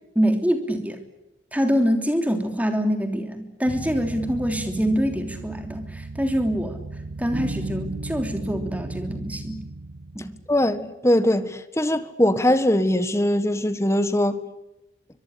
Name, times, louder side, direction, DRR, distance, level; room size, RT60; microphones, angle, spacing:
voice 1, 0.1-1.0 1.5-6.8 7.2-9.6 10.1-10.3, equal, 10° right, 3.2 m, -25 dB
sound 1, 3.7-10.7, right 2 dB, 85° right, 1.1 m, -35 dB
voice 2, 10.5-14.4, left 1 dB, 15° left, 1.5 m, -21 dB
24.5 x 23.0 x 8.6 m
head